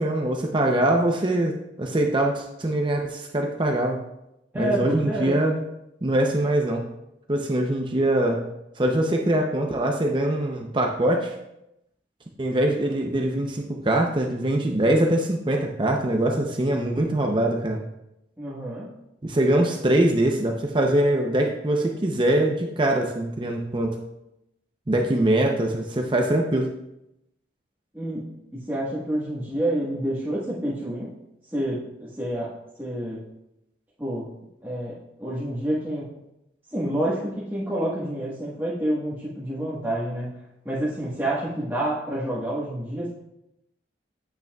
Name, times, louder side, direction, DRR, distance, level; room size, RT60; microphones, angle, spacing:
voice 1, 0.0-4.0 4.5-5.6 6.0-6.8 7.3-8.4 8.8-11.3 12.4-17.8 19.2-24.0 24.9-26.7, right 1 dB, 25° right, 1 dB, 0.6 m, -23 dB
voice 2, 4.5-5.3 18.4-18.9 27.9-28.2 28.7-31.1 31.5-32.5 32.8-33.2 34.0-34.3 34.6-36.1 36.7-40.3 40.6-43.1, right 1 dB, 10° right, -10 dB, 1.3 m, -28 dB
9.0 x 8.1 x 2.3 m, 0.86 s
head